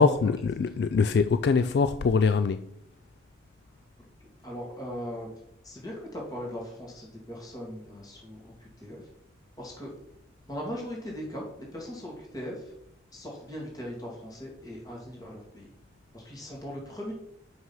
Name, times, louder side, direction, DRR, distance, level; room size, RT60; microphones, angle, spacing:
voice 1, 0.0-2.7, left 5 dB, 60° left, 0.3 m, -23 dB
voice 2, 4.4-5.3 5.6-8.4 8.8-9.0 9.6-9.9 10.5-11.4 11.7-12.6 13.1-15.7 16.1-17.1, equal, 20° left, 2.3 m, -39 dB
5.9 x 5.9 x 5.6 m
head